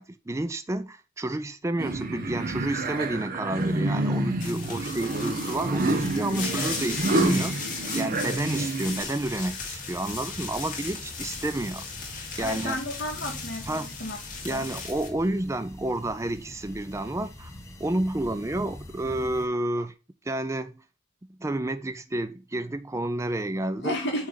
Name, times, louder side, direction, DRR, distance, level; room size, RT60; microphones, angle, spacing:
voice 1, 0.0-7.6 7.9-11.9 12.4-12.8 13.7-13.9 14.4-17.5 17.8-19.9 20.2-20.8 21.3-24.0, right 1 dB, 15° right, 0.4 m, -30 dB
sound 1, 1.8-9.0, right 2 dB, 45° right, 0.9 m, -28 dB
sound 2, 4.4-15.1, left 4 dB, 45° left, 2.2 m, -37 dB
sound 3, 8.8-19.5, left 1 dB, 15° left, 0.9 m, -45 dB
voice 2, 12.4-14.2 14.5-14.7 23.7-24.3, left 1 dB, 60° left, 2.0 m, -32 dB
8.4 x 3.4 x 3.7 m
head